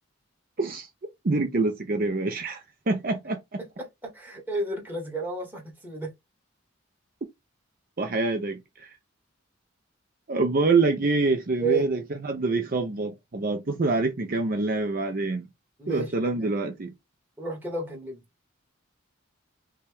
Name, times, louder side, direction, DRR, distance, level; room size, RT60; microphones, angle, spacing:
voice 1, 0.6-0.9 1.2-3.6 8.0-8.9 10.3-15.5 15.9-16.9, right 3 dB, 45° right, 0.6 m, -26 dB
voice 2, 3.6-6.1 11.6-11.9 15.8-16.3 17.4-18.2, right 3 dB, 10° right, 1.6 m, -32 dB
5.6 x 2.3 x 3.4 m
head